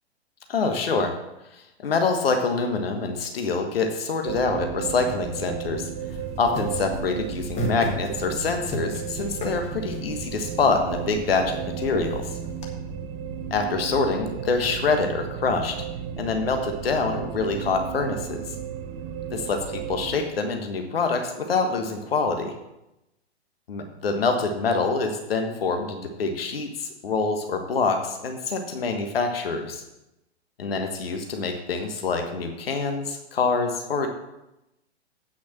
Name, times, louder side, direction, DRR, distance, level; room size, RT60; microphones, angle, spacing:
voice 1, 0.5-1.1 1.5-5.9 6.4-12.3 13.5-15.8 16.2-18.4 19.3-22.5 23.7-29.8 30.6-34.1, left 4 dB, 60° left, 4 dB, 1.4 m, -26 dB
sound 1, 4.3-20.2, right 8 dB, 25° right, 0.7 m, -34 dB
sound 2, 6.0-12.7, equal, 20° left, 1.8 m, -36 dB
8.5 x 6.1 x 7.4 m, 0.92 s
figure-of-eight pair, 110°, 33 cm